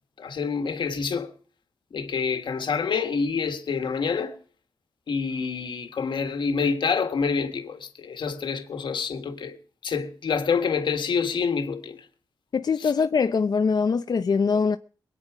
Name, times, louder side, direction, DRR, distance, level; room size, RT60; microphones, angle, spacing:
voice 1, 0.2-1.3 1.9-4.3 5.1-12.1 12.8-12.9, left 5 dB, 85° left, 1.6 m, -27 dB
voice 2, 12.5-14.8, left 5 dB, 55° left, 0.6 m, -23 dB
22.5 x 9.1 x 4.9 m
wide cardioid pair, 85°, 8 cm